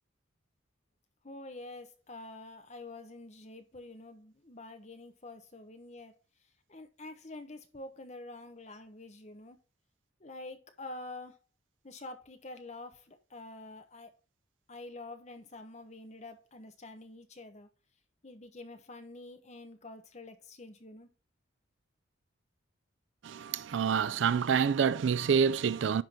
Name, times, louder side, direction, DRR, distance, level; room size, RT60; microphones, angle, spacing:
voice 1, 1.2-6.1 6.7-9.6 10.2-11.4 11.8-14.1 14.7-17.7 18.2-21.1, left 2 dB, 35° left, 1.0 m, -47 dB
voice 2, 23.2-26.0, right 6 dB, 65° right, 0.4 m, -27 dB
10.5 x 3.8 x 4.4 m
head